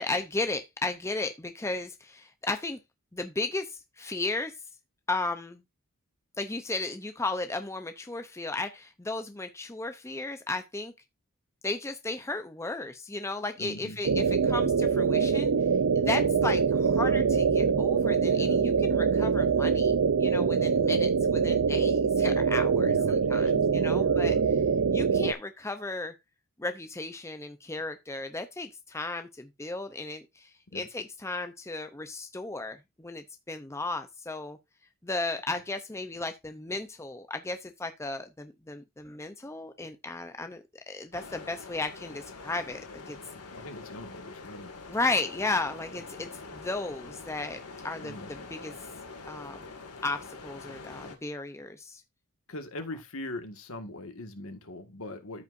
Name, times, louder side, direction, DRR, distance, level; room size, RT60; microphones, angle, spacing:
voice 1, 0.0-2.8 3.1-4.5 5.1-5.6 6.4-10.9 11.6-15.5 15.9-24.4 24.9-26.1 26.6-34.6 35.0-43.2 44.9-48.7 49.3-49.7 50.0-52.0, left 2 dB, 10° left, 0.6 m, -35 dB
voice 2, 13.6-14.0 18.3-18.6 21.2-21.6 22.8-24.4 30.7-30.9 43.5-44.7 48.0-48.3 52.5-55.4, left 1 dB, 65° left, 1.7 m, -41 dB
sound 1, 14.0-25.3, right 6 dB, 80° right, 0.6 m, -24 dB
sound 2, 41.1-51.2, left 3 dB, 90° left, 2.2 m, -45 dB
13.5 x 5.6 x 2.6 m
head